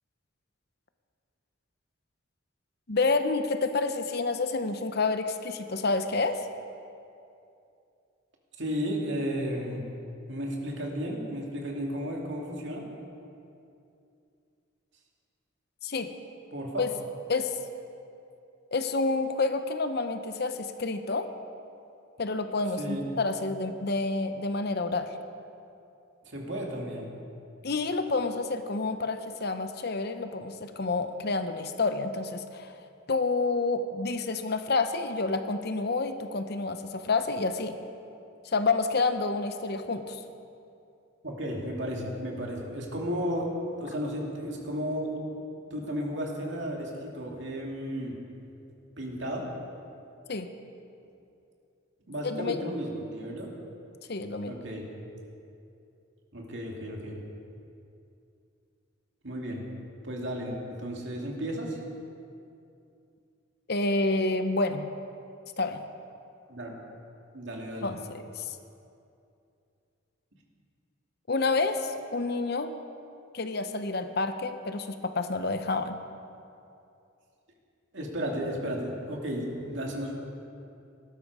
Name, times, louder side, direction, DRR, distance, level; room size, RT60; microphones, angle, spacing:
voice 1, 2.9-6.5 15.8-16.1 16.8-16.9 17.3-17.5 18.7-21.3 22.2-25.1 27.6-32.7 33.1-37.8 38.4-40.2 50.3-50.5 52.2-52.7 54.1-54.6 63.7-64.9 65.6-65.8 67.8-68.6 71.3-72.7 73.3-76.0, left 3 dB, 50° left, 8 dB, 0.8 m, -29 dB
voice 2, 8.6-9.9 10.3-12.9 16.5-16.9 22.8-23.0 26.2-27.1 41.2-43.5 43.8-45.4 45.7-48.2 49.0-49.5 52.1-53.5 54.4-54.9 56.3-57.2 59.2-59.6 60.0-61.8 66.5-66.7 67.3-67.9 77.9-80.1, equal, 60° right, -1 dB, 2.6 m, -33 dB
18.5 x 12.0 x 4.8 m, 2.6 s
head